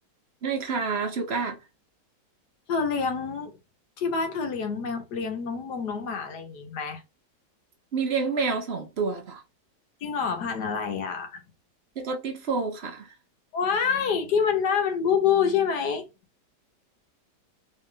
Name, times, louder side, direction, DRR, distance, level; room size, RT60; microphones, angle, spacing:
voice 1, 0.4-1.6 7.9-9.4 12.0-13.1, right 4 dB, 50° right, 0.8 m, -28 dB
voice 2, 2.7-3.6 4.0-7.0 10.0-11.4 13.5-16.0, left 6 dB, 70° left, 1.6 m, -26 dB
3.7 x 3.7 x 3.2 m
omnidirectional pair, 1.9 m